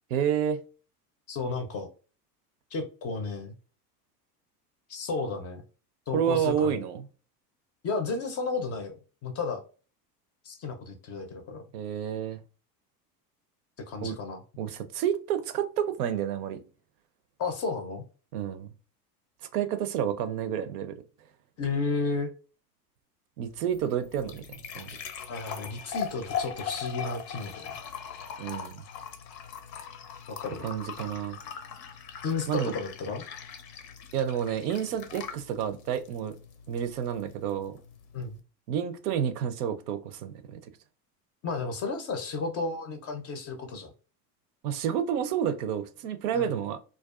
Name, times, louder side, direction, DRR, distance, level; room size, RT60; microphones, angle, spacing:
voice 1, 0.1-0.6 6.1-7.0 11.7-12.4 14.0-14.2 14.6-16.6 18.3-18.7 19.5-21.0 23.4-24.9 28.4-28.8 30.6-31.4 32.5-32.7 34.1-36.4 36.7-37.8 38.7-40.6 44.6-46.8, right 9 dB, 65° right, 0.5 m, -30 dB
voice 2, 1.3-1.9 2.7-3.5 4.9-5.6 6.1-6.8 7.8-9.6 10.4-11.6 13.9-14.4 17.4-18.0 21.6-22.3 25.3-27.8 30.3-30.7 32.2-33.2 38.1-38.4 41.4-43.9 46.3-46.5, left 4 dB, 30° left, 0.5 m, -33 dB
sound 1, 23.4-38.4, left 7 dB, 85° left, 0.6 m, -41 dB
2.3 x 2.2 x 2.3 m
hypercardioid pair, 85°, 49 cm